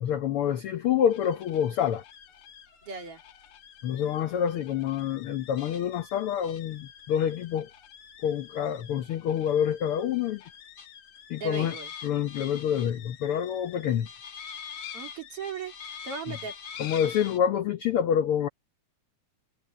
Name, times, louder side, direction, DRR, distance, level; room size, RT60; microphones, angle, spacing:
voice 1, 0.0-2.0 3.8-7.7 8.2-10.4 11.3-11.8 12.0-14.1 16.3-16.4 16.8-18.5, left 9 dB, 80° left, 1.2 m, -27 dB
sound 1, 1.1-17.4, left 8 dB, 60° left, 2.6 m, -46 dB
voice 2, 2.8-3.2 11.3-11.9 14.9-15.7 16.0-16.6, right 6 dB, 45° right, 3.5 m, -37 dB
omnidirectional pair, 3.6 m